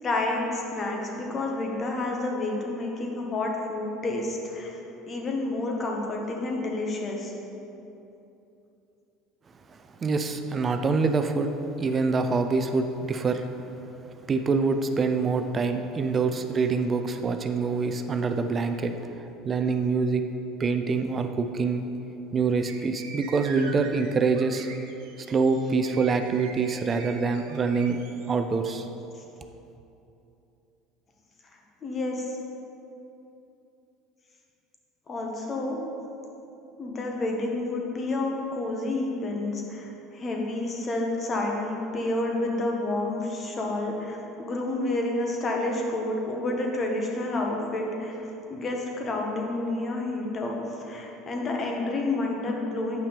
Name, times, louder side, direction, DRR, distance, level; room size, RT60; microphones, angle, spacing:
voice 1, 0.0-4.7 5.1-7.3 31.8-32.3 35.1-35.8 36.8-48.2 48.5-50.6 50.8-53.0, left 2 dB, 35° left, 0 dB, 1.4 m, -29 dB
voice 2, 10.0-11.5 11.8-13.5 14.3-20.2 20.6-21.9 22.3-24.7 25.3-28.0 28.3-28.9, right 4 dB, 35° right, 7 dB, 0.5 m, -25 dB
sound 1, 22.7-28.3, right 4 dB, 75° right, 0.8 m, -44 dB
9.1 x 5.6 x 3.4 m, 2.9 s
hypercardioid pair, 80°, 0 cm